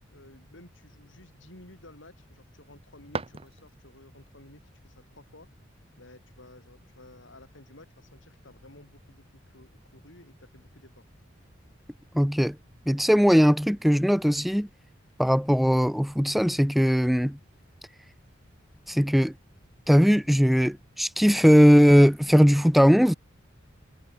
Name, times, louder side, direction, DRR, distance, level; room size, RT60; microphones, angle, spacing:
voice 1, 0.0-5.5 6.0-11.1, left 1 dB, 75° left, 5.0 m, -53 dB
sound 1, 3.0-4.1, right 3 dB, 30° right, 1.2 m, -39 dB
voice 2, 12.1-12.6 12.9-14.7 15.2-17.4 18.9-19.3 19.9-23.1, equal, ahead, 0.4 m, -19 dB
head